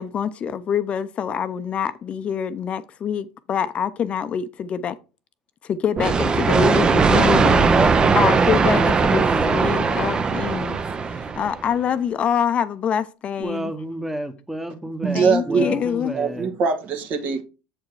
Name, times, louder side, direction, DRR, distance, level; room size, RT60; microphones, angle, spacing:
voice 1, 0.0-5.0 5.6-7.7 8.1-10.8 11.2-13.7 15.1-16.2, left 8 dB, 40° left, 0.7 m, -25 dB
sound 1, 6.0-11.7, right 5 dB, 25° right, 0.7 m, -19 dB
voice 2, 7.5-9.7 13.4-16.5, right 1 dB, 5° right, 1.2 m, -29 dB
voice 3, 15.0-15.7 16.1-17.4, right 5 dB, 55° right, 1.8 m, -22 dB
7.4 x 4.8 x 4.8 m
hypercardioid pair, 85°, 3 cm